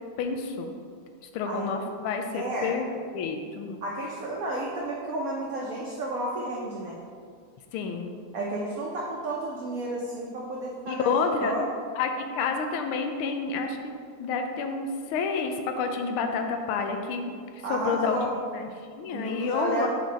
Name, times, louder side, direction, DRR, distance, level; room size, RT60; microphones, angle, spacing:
voice 1, 0.2-0.7 1.3-2.9 3.1-3.8 7.7-8.1 10.9-11.5 12.0-13.9 14.2-17.2 17.7-18.2 18.5-19.9, left 5 dB, 80° left, 5 dB, 1.4 m, -29 dB
voice 2, 2.3-2.8 3.8-7.0 8.3-11.1 11.4-11.8 17.6-18.3 19.1-19.9, right 2 dB, 85° right, -3 dB, 0.7 m, -32 dB
4.6 x 4.2 x 5.0 m, 2.1 s
omnidirectional pair, 2.4 m